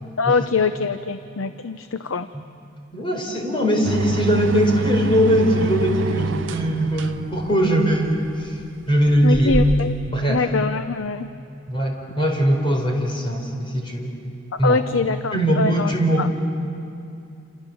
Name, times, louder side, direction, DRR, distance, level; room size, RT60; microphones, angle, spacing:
voice 1, 0.2-2.3 9.2-9.9 10.3-11.3 14.5-15.9 16.2-16.3, left 4 dB, 90° left, 10 dB, 0.7 m, -23 dB
voice 2, 2.9-8.6 8.9-9.6 10.1-10.4 11.7-14.1 14.6-14.8 15.3-16.3, equal, 25° left, 2 dB, 4.3 m, -20 dB
sound 1, 3.8-10.1, right 4 dB, 65° right, 0.6 m, -27 dB
28.5 x 28.0 x 7.0 m, 2.6 s
head